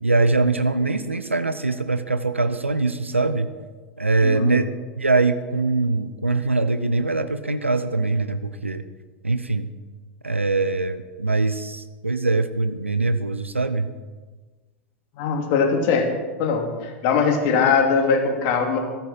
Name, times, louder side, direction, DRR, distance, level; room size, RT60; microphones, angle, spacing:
voice 1, 0.0-3.5 4.0-8.9 9.2-9.7 10.2-13.9, right 3 dB, 90° right, 11 dB, 0.7 m, -22 dB
voice 2, 4.2-4.5 15.2-16.1 16.4-18.8, left 5 dB, 50° left, 3 dB, 2.9 m, -21 dB
15.0 x 13.5 x 5.7 m, 1.3 s
figure-of-eight pair, 85°, 7 cm